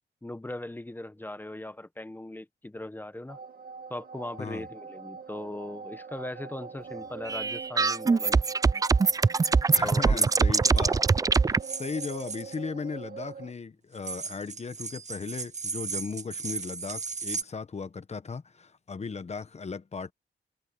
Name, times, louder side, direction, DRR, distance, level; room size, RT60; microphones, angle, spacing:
voice 1, 0.2-3.4 3.9-8.4 9.8-10.2, left 1 dB, 10° left, 1.1 m, -39 dB
sound 1, 3.3-13.5, right 6 dB, 60° right, 1.8 m, -43 dB
sound 2, 7.3-11.6, right 4 dB, 20° right, 0.3 m, -23 dB
voice 2, 9.7-11.0 11.4-20.1, left 5 dB, 40° left, 1.2 m, -37 dB
sound 3, 10.7-10.8 11.6-12.6 14.0-17.4, right 5 dB, 40° right, 1.9 m, -36 dB
cardioid pair, 90°, 18 cm